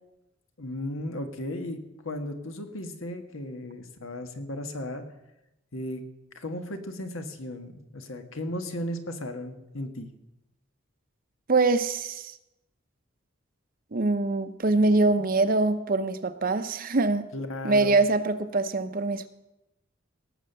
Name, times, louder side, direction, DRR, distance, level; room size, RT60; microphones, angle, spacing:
voice 1, 0.6-5.0 5.7-6.0 6.3-10.1 17.3-18.0, left 1 dB, 80° left, 7 dB, 1.5 m, -35 dB
voice 2, 11.5-12.3 13.9-17.3 17.6-19.3, right 3 dB, 45° right, 10 dB, 0.7 m, -24 dB
17.5 x 7.2 x 6.8 m, 0.93 s
head